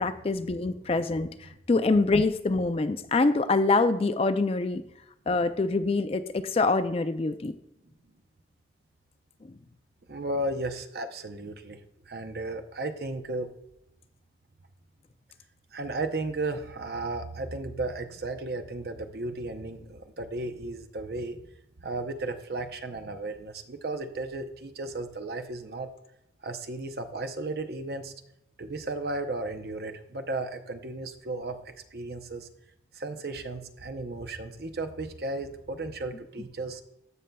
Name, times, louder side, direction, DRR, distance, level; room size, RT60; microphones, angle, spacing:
voice 1, 0.0-4.8 5.3-7.6 9.4-9.5, left 3 dB, 30° left, 10 dB, 0.4 m, -25 dB
voice 2, 10.1-11.8 12.1-13.5 15.7-21.4 21.8-25.9 26.4-28.1 28.6-32.5 32.9-36.8, right 2 dB, 55° right, 7 dB, 0.7 m, -34 dB
15.0 x 5.4 x 2.3 m, 0.82 s
head